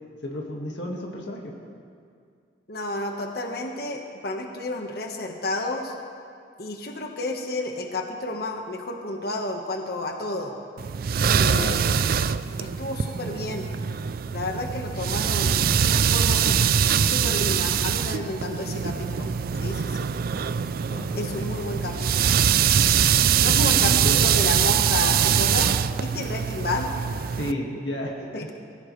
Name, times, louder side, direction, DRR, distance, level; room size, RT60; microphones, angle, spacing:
voice 1, 0.2-1.5 11.4-11.8 20.8-21.6 23.4-24.2 27.3-28.5, left 1 dB, 70° left, -2 dB, 2.0 m, -32 dB
voice 2, 2.7-5.9 6.6-10.6 11.4-11.8 12.6-13.7 14.3-16.5 17.0-19.3 19.6-20.1 21.2-22.3 23.4-25.7 26.0-26.9 28.3-28.5, left 2 dB, 55° left, 2 dB, 1.4 m, -31 dB
sound 1, 10.8-27.5, right 8 dB, 55° right, 0.4 m, -23 dB
22.0 x 16.0 x 3.3 m, 2.3 s
head